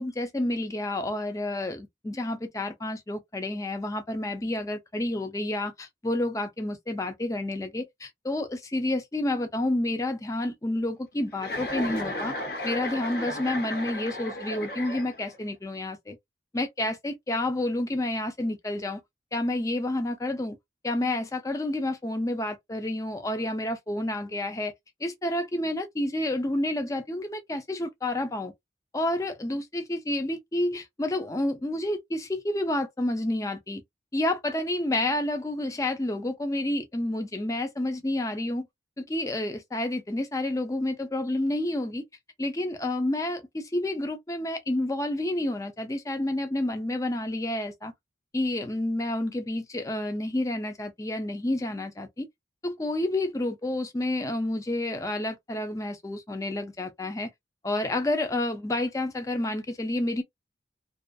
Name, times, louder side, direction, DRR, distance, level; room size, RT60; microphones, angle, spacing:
voice 1, 0.0-12.3 12.6-16.2 16.5-19.0 19.3-20.6 20.8-24.7 25.0-28.5 28.9-33.8 34.1-38.7 39.0-42.0 42.4-47.9 48.3-52.3 52.6-57.3 57.6-60.2, left 1 dB, 15° left, 0.4 m, -29 dB
Chuckle chortle, 11.4-15.4, left 1 dB, 50° left, 0.7 m, -34 dB
2.5 x 2.4 x 2.2 m
head